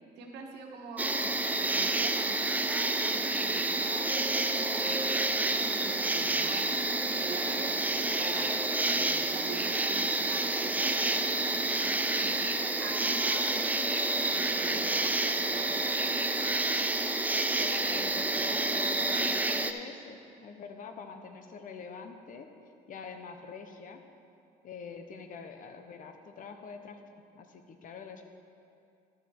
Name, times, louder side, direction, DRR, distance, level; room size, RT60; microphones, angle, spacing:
voice 1, 0.2-13.7 14.0-16.7, right 4 dB, 80° right, 1 dB, 1.4 m, -44 dB
sound 1, 1.0-19.7, right 2 dB, 10° right, 0.4 m, -29 dB
voice 2, 17.6-22.5 22.9-24.0 24.6-27.0 27.3-28.2, left 5 dB, 50° left, 6 dB, 0.9 m, -45 dB
12.0 x 7.2 x 4.4 m, 2.5 s
cardioid pair, 110°, 17 cm